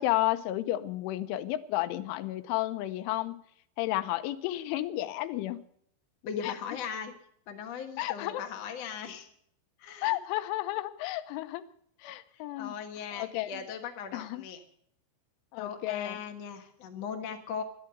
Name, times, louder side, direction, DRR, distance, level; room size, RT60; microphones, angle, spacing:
voice 1, 0.0-3.4 3.8-5.6 6.4-6.5 8.0-8.5 10.0-11.7 12.0-12.7 13.1-13.5 14.1-14.4 15.5-16.2, left 15 dB, 85° left, 13 dB, 3.2 m, -32 dB
voice 2, 6.2-7.1 7.5-9.3 9.8-10.2 12.6-14.6 15.6-17.6, left 7 dB, 65° left, 4 dB, 1.6 m, -38 dB
12.5 x 11.0 x 7.8 m, 0.66 s
omnidirectional pair, 5.5 m